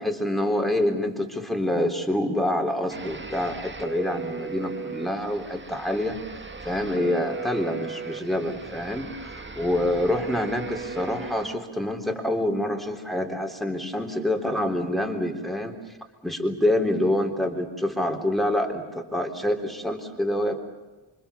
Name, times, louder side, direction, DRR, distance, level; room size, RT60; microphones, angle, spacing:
voice 1, 0.0-6.2 6.6-15.8 16.2-20.6, left 1 dB, ahead, 3 dB, 3.6 m, -26 dB
sound 1, 2.9-11.6, right 4 dB, 20° right, 1.6 m, -37 dB
28.0 x 25.0 x 7.0 m, 1.2 s
wide cardioid pair, 115°, 49 cm